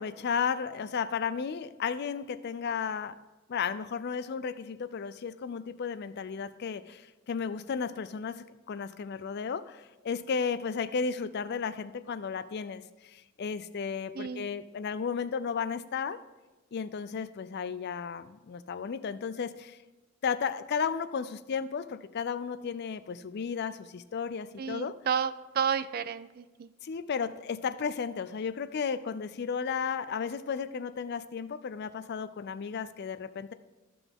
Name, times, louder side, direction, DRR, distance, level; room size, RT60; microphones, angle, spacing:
voice 1, 0.0-3.2 3.5-16.2 16.7-19.8 20.2-25.0 26.8-33.5, left 6 dB, 50° left, 14 dB, 0.4 m, -34 dB
voice 2, 14.2-14.5 24.6-26.7, right 7 dB, 45° right, 14 dB, 0.3 m, -31 dB
13.0 x 5.9 x 3.6 m, 1.2 s
head